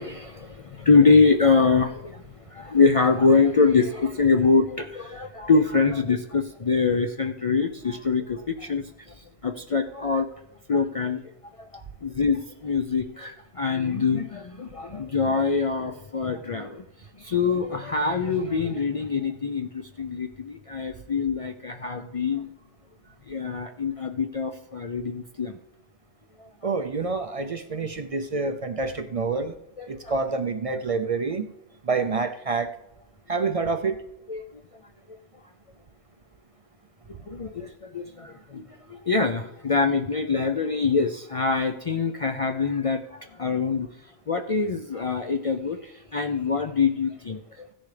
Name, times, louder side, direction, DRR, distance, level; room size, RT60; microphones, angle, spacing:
voice 1, 0.0-8.9 9.2-10.3 10.7-11.2 11.6-16.9 17.2-22.5 23.3-25.6 26.4-26.5 29.8-30.2 34.3-34.4 37.1-43.9 44.3-47.7, left 4 dB, 55° left, 5 dB, 0.4 m, -24 dB
voice 2, 26.6-29.5 29.9-31.4 31.8-32.7 33.3-34.0, right 4 dB, 50° right, 9 dB, 0.4 m, -27 dB
16.0 x 10.0 x 3.3 m, 0.85 s
omnidirectional pair, 1.2 m